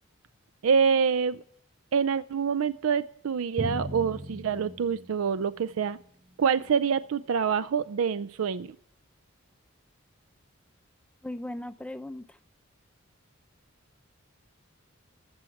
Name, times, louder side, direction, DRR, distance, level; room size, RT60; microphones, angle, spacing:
voice 1, 0.6-1.4 1.9-6.0 6.4-8.7, right 6 dB, 80° right, 15 dB, 0.4 m, -26 dB
Drum, 3.6-6.0, right 1 dB, 20° right, 0.8 m, -38 dB
voice 2, 11.2-12.4, left 1 dB, 5° left, 11 dB, 0.4 m, -38 dB
15.0 x 7.0 x 7.1 m, 0.66 s
head